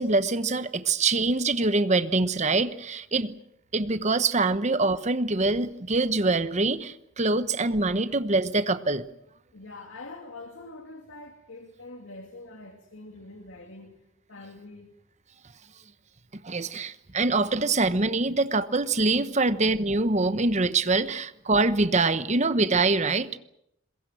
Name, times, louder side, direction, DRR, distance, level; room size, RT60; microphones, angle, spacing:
voice 1, 0.0-3.4 3.7-9.0 16.4-23.4, right 3 dB, 35° right, 13 dB, 1.1 m, -24 dB
voice 2, 9.5-14.0 14.3-14.9, left 2 dB, 85° left, 3 dB, 2.5 m, -44 dB
22.0 x 22.0 x 8.0 m, 0.78 s
head